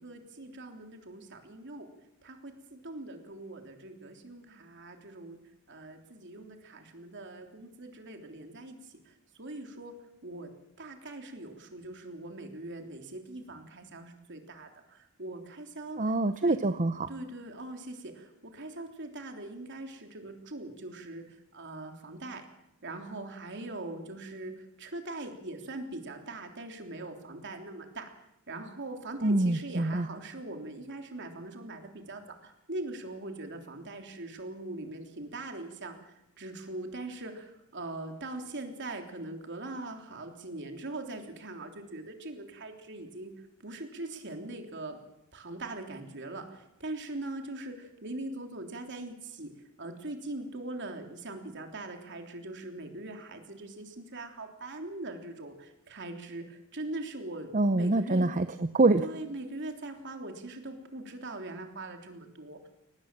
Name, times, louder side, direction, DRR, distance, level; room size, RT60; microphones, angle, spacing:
voice 1, 0.0-1.9 2.2-5.4 5.7-9.9 10.2-10.5 10.8-16.0 16.4-16.6 17.1-22.5 22.8-28.1 28.5-45.0 45.3-49.5 49.8-58.3 59.0-62.7, right 2 dB, 55° right, 4 dB, 3.4 m, -41 dB
voice 2, 16.0-17.1 29.2-30.1 57.5-59.0, right 2 dB, 40° right, 10 dB, 0.8 m, -25 dB
23.5 x 19.0 x 7.6 m, 0.86 s
head